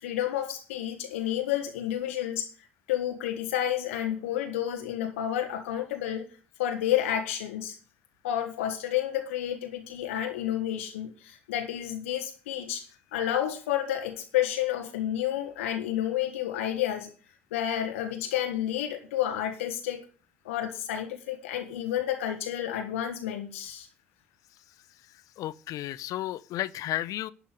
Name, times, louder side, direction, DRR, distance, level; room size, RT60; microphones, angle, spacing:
voice 1, 0.0-2.5 2.9-6.3 6.6-7.8 8.2-12.8 13.1-17.1 17.5-20.0 20.4-23.9, left 11 dB, 75° left, 1.6 m, -30 dB
voice 2, 25.4-27.3, left 14 dB, 55° left, 0.8 m, -33 dB
11.5 x 6.1 x 7.8 m
hypercardioid pair, 60°, 7 cm